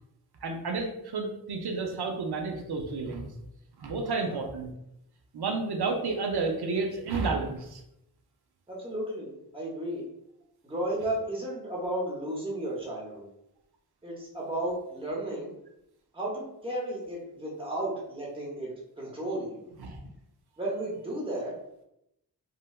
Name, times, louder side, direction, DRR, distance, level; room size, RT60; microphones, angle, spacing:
voice 1, 0.4-3.3 3.8-4.7 5.3-7.8 19.8-20.0, right 4 dB, 75° right, 2 dB, 0.6 m, -31 dB
voice 2, 8.7-10.0 10.6-13.3 14.0-15.5 16.1-19.7 20.6-21.5, right 1 dB, 15° right, -3 dB, 0.8 m, -34 dB
3.2 x 2.2 x 2.3 m, 0.81 s
wide cardioid pair, 80°, 38 cm